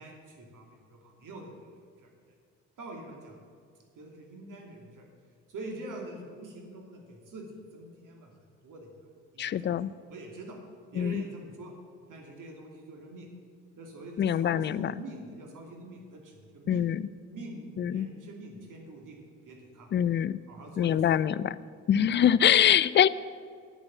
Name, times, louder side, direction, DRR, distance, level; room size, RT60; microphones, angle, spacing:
voice 1, 0.0-1.7 2.0-2.1 2.8-3.4 3.9-5.1 5.5-7.5 7.7-8.3 8.6-8.9 9.3-9.7 10.1-10.6 10.9-11.7 12.1-13.3 13.8-16.8 17.3-19.2 19.4-19.9 20.5-21.3 21.9-22.0, right 2 dB, 55° right, 1 dB, 2.7 m, -44 dB
voice 2, 9.4-9.9 11.0-11.2 14.2-14.9 16.7-17.0 17.8-18.1 19.9-20.4 20.8-21.5 21.9-23.1, left 9 dB, 30° left, 18 dB, 0.4 m, -24 dB
10.5 x 8.7 x 7.6 m, 2.1 s
hypercardioid pair, 55°, 37 cm